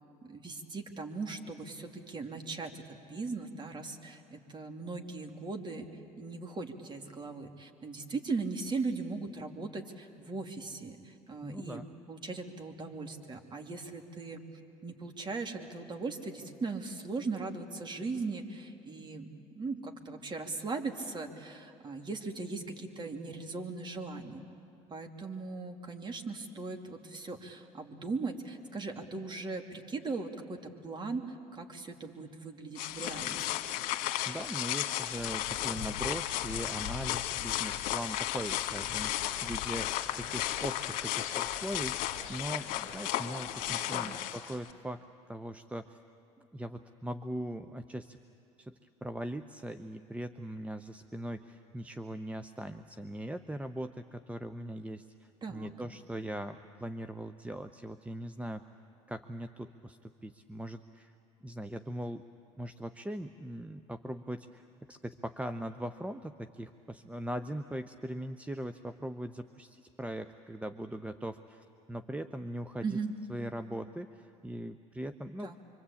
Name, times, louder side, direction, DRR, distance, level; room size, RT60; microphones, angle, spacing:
voice 1, 0.2-5.9 6.2-14.4 14.8-19.3 19.5-24.4 24.9-33.4 43.6-44.1 55.4-55.7 72.8-73.1 75.4-75.5, right 3 dB, 30° right, 3 dB, 2.8 m, -39 dB
voice 2, 11.4-11.9 34.3-39.2 39.4-46.0 46.4-48.2 48.6-58.7 59.1-61.1 61.4-62.2 62.6-64.6 64.9-73.0 73.3-75.5, right 1 dB, 10° right, 9 dB, 0.8 m, -40 dB
sound 1, 32.8-44.7, left 13 dB, 65° left, 1.8 m, -34 dB
25.5 x 24.5 x 8.6 m, 2.6 s
hypercardioid pair, 75°, 16 cm